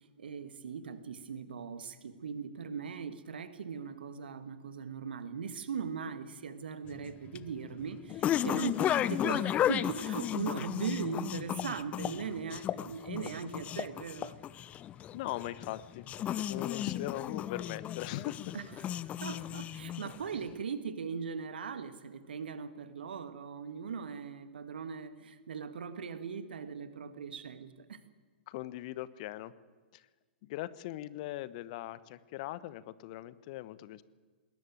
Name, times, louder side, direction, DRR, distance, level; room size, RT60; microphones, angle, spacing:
voice 1, 0.2-14.4 18.5-18.7 19.2-28.0, right 6 dB, 65° right, 11 dB, 1.9 m, -39 dB
sound 1, 6.9-20.4, left 11 dB, 25° left, 0.6 m, -34 dB
voice 2, 15.1-16.0 16.4-18.5 28.5-29.5 29.9-30.1 30.4-34.0, left 15 dB, 45° left, 17 dB, 1.0 m, -40 dB
20.5 x 18.5 x 9.3 m, 1.4 s
figure-of-eight pair, 110°, 6 cm